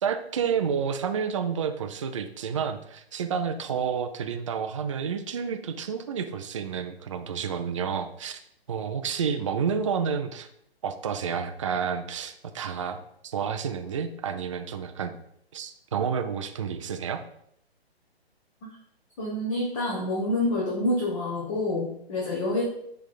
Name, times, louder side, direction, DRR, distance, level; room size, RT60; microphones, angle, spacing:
voice 1, 0.0-8.4 8.7-10.5 10.8-15.1 15.5-17.2, right 7 dB, 30° right, 8 dB, 0.4 m, -30 dB
voice 2, 19.2-22.6, left 1 dB, 30° left, -5 dB, 1.6 m, -27 dB
10.5 x 3.5 x 3.9 m, 0.73 s
figure-of-eight pair, 140°, 32 cm